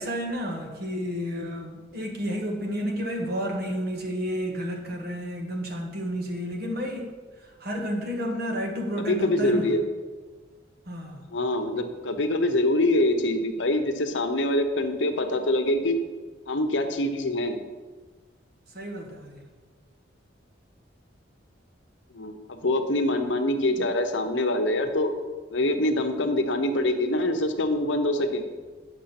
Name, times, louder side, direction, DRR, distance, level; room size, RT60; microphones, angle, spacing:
voice 1, 0.0-7.1 7.4-9.7 10.9-11.2 18.7-19.5, equal, 55° right, 2 dB, 1.5 m, -31 dB
voice 2, 9.0-9.8 11.3-16.0 16.5-17.6 22.1-25.1 25.5-28.4, left 1 dB, 70° left, 6 dB, 0.9 m, -25 dB
9.1 x 6.1 x 5.8 m, 1.4 s
head